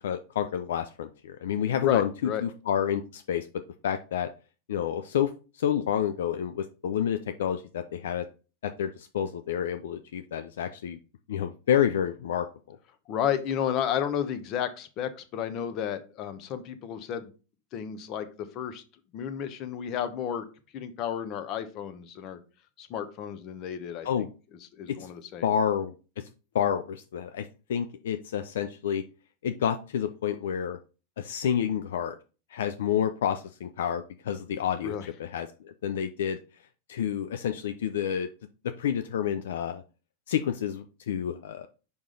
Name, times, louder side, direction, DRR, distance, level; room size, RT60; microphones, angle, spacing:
voice 1, 0.0-3.5 3.8-4.3 4.7-5.3 5.6-8.2 8.6-11.0 11.3-12.8 24.0-24.3 24.9-25.1 25.4-26.2 26.5-29.0 29.4-30.8 31.2-32.2 32.5-36.4 36.9-38.3 38.6-39.8 40.3-41.7, left 9 dB, 80° left, 9 dB, 0.4 m, -29 dB
voice 2, 1.8-2.4 13.1-17.3 17.7-18.8 19.1-20.4 20.7-22.4 22.8-24.1 24.7-25.4 34.8-35.1, left 9 dB, 45° left, 11 dB, 0.9 m, -32 dB
5.3 x 4.9 x 3.8 m, 0.34 s
hypercardioid pair, 110°, 0 cm